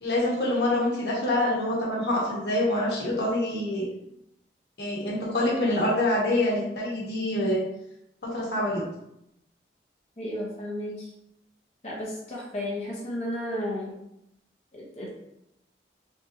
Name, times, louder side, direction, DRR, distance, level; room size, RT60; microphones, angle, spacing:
voice 1, 0.0-3.9 4.8-7.6 8.2-8.8, left 1 dB, 70° left, -4 dB, 1.1 m, -26 dB
voice 2, 10.2-11.1 11.8-14.0 14.7-15.1, left 1 dB, 35° left, -4 dB, 0.7 m, -33 dB
3.6 x 2.9 x 2.6 m, 0.82 s
head